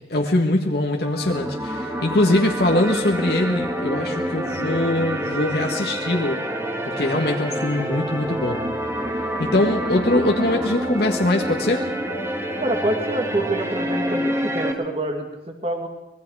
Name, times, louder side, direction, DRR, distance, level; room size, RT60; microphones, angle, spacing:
voice 1, 0.0-6.4 6.8-8.6 9.4-11.8, left 1 dB, 55° left, 1 dB, 1.7 m, -22 dB
sound 1, 1.0-14.7, equal, 15° right, 2.0 m, -27 dB
voice 2, 12.6-15.9, right 1 dB, 30° right, 4 dB, 2.3 m, -26 dB
25.0 x 21.0 x 4.9 m, 0.98 s
head